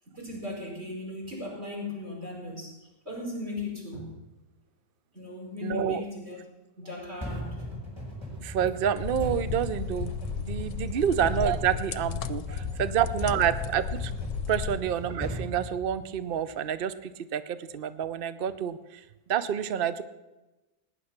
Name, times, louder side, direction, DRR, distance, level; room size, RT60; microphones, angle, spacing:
voice 1, 0.1-2.7 3.1-4.1 5.1-6.4 6.8-7.7 10.9-11.0, left 2 dB, 35° right, -2 dB, 5.6 m, -37 dB
voice 2, 5.6-6.0 8.4-10.1 10.4-14.1 14.5-19.0 19.3-20.0, right 9 dB, 85° right, 13 dB, 0.4 m, -28 dB
sound 1, 7.2-16.4, equal, 15° right, 5.7 m, -38 dB
sound 2, 9.0-14.8, left 9 dB, 70° left, 1.1 m, -35 dB
18.0 x 10.0 x 5.8 m, 1.1 s
omnidirectional pair, 1.8 m